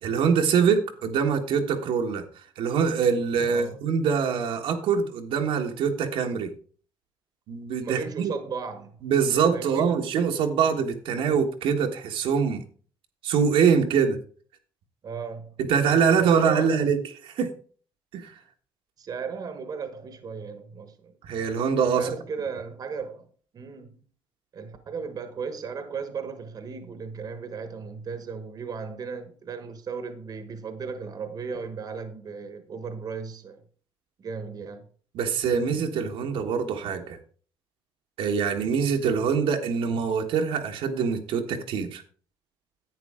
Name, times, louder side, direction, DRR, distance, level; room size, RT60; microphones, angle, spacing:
voice 1, 0.0-6.5 7.5-8.3 9.0-12.6 13.2-14.2 15.6-17.0 17.2-17.5 18.1-18.4 21.2-22.1 35.1-37.2 38.2-42.0, right 6 dB, 75° right, 1.4 m, -24 dB
voice 2, 7.8-9.0 9.5-10.0 15.0-15.5 16.1-16.8 19.0-21.2 21.9-23.3 23.5-24.0 24.5-33.6 34.2-34.9, right 5 dB, 45° right, 1.2 m, -36 dB
10.5 x 8.3 x 3.7 m
cardioid pair, 115°, 9 cm